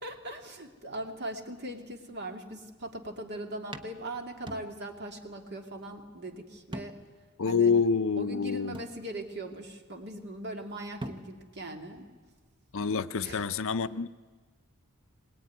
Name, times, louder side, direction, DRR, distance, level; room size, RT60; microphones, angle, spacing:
voice 1, 0.0-7.0 7.5-7.7 8.2-12.1 13.2-13.5, right 1 dB, 50° right, 4 dB, 2.4 m, -40 dB
sound 1, 2.9-3.2 3.7-5.1 5.4-5.5 6.7-7.3 7.7-7.8 8.7-9.5 10.7-10.8 11.0-11.6, right 1 dB, 20° right, 1.0 m, -43 dB
voice 2, 7.4-8.8 12.7-14.1, left 5 dB, 60° left, 13 dB, 0.6 m, -27 dB
21.5 x 19.5 x 9.5 m, 1.4 s
head